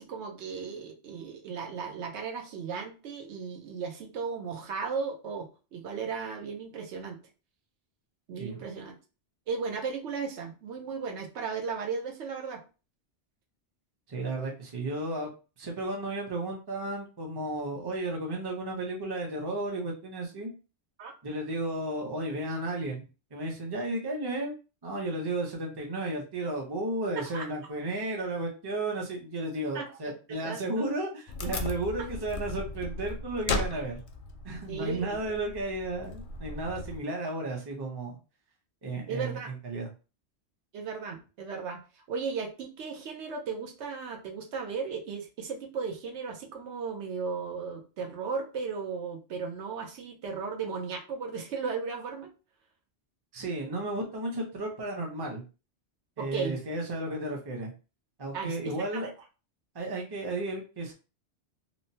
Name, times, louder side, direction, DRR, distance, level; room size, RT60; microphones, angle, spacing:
voice 1, 0.0-7.2 8.3-9.0 9.5-12.6 21.0-21.1 27.2-27.5 29.7-30.2 30.4-30.9 34.7-35.2 39.1-39.5 40.7-52.3 56.2-56.6 58.3-59.1, right 5 dB, 80° right, 2 dB, 1.0 m, -36 dB
voice 2, 14.1-15.3 15.6-20.5 21.2-23.0 23.3-24.5 24.8-34.0 34.4-38.1 38.8-39.9 53.3-55.4 56.2-57.7 58.2-59.1 59.7-60.9, right 2 dB, 30° right, 1 dB, 0.6 m, -33 dB
Wood, 31.3-37.0, left 3 dB, 60° left, 0.6 m, -36 dB
3.0 x 2.1 x 2.6 m, 0.33 s
omnidirectional pair, 1.2 m